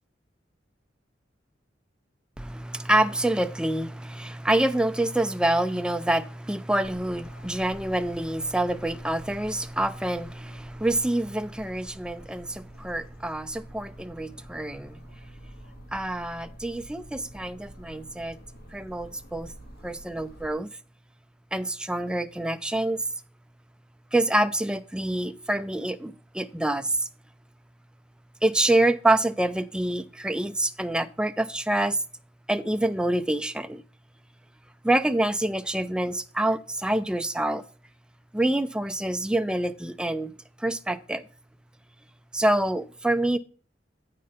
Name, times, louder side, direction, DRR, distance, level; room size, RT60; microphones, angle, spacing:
voice 1, 2.4-15.0 15.9-18.4 18.7-19.5 19.8-20.7 21.5-23.0 24.1-27.1 28.4-32.0 32.5-33.8 34.8-37.6 38.3-40.3 40.6-41.3 42.3-43.4, right 1 dB, 5° right, 0.4 m, -26 dB
sound 1, 6.8-20.5, right 1 dB, 55° left, 2.0 m, -49 dB
8.6 x 5.6 x 5.0 m
head